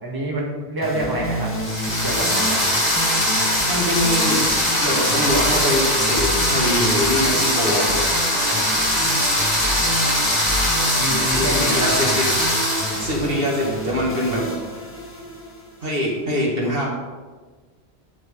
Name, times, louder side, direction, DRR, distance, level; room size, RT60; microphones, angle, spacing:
voice 1, 0.0-1.5 1.9-2.7 11.0-12.0, right 1 dB, 20° right, -3 dB, 1.8 m, -27 dB
sound 1, 0.8-16.2, equal, 10° left, 1.6 m, -30 dB
sound 2, 1.5-13.3, left 1 dB, 35° left, 2.7 m, -21 dB
voice 2, 3.7-4.4 4.8-8.0 11.4-12.3 13.0-14.5 15.8-16.9, equal, 55° right, -3 dB, 2.4 m, -23 dB
12.5 x 7.7 x 3.9 m, 1.3 s
omnidirectional pair, 1.1 m